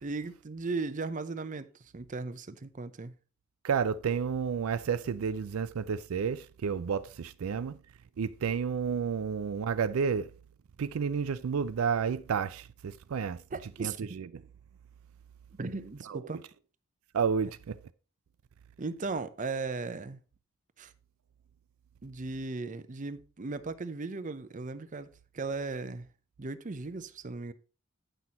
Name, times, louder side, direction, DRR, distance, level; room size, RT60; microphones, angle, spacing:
voice 1, 0.0-3.1 13.5-14.2 15.6-16.4 18.8-20.2 20.8-20.9 22.0-26.1 26.4-27.5, right 3 dB, 35° right, 0.6 m, -37 dB
voice 2, 3.6-7.8 8.2-10.3 10.8-13.4 13.8-14.3 16.1-16.2 17.1-17.8, right 6 dB, 80° right, 0.4 m, -31 dB
9.0 x 6.0 x 4.1 m
head